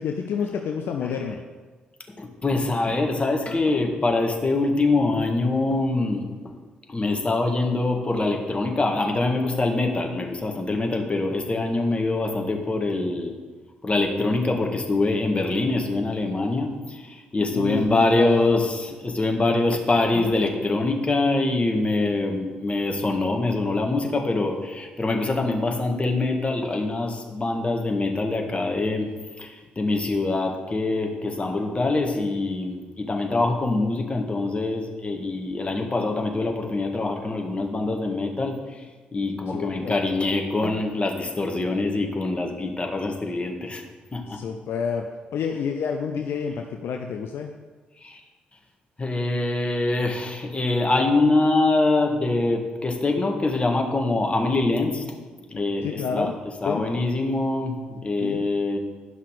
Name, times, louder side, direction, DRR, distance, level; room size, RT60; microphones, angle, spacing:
voice 1, 0.0-1.4 17.5-18.7 39.5-40.0 44.3-45.1 45.3-47.5 55.8-56.4 56.7-56.8 58.2-58.4, left 6 dB, 60° left, 4 dB, 0.6 m, -29 dB
voice 2, 2.2-6.6 6.9-13.4 13.8-29.1 29.4-38.6 39.1-43.8 44.1-44.4 48.0-48.2 49.0-55.0 55.5-56.3 56.6-58.8, left 2 dB, 25° left, 2 dB, 1.8 m, -24 dB
11.0 x 5.6 x 4.9 m, 1.3 s
hypercardioid pair, 45°, 5 cm